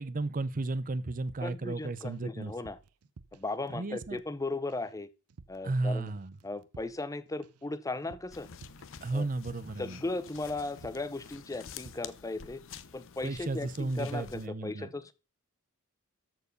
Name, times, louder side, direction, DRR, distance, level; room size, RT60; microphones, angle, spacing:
voice 1, 0.0-2.5 3.7-4.2 5.6-6.3 9.0-10.0 13.2-14.9, right 2 dB, 40° right, 0.7 m, -34 dB
sound 1, 1.3-2.2 2.5-4.4 4.7-5.0 5.3-5.8 6.1-9.9 10.1-10.4 10.7-11.3 11.5-12.1, right 4 dB, 80° right, 0.6 m, -55 dB
voice 2, 1.4-2.8 3.3-5.1 5.5-6.1 6.4-8.5 9.1-9.3 9.8-12.6 12.9-15.1, left 2 dB, 15° left, 0.6 m, -37 dB
sound 2, 8.3-14.5, left 7 dB, 60° left, 0.7 m, -49 dB
13.5 x 4.7 x 5.3 m
head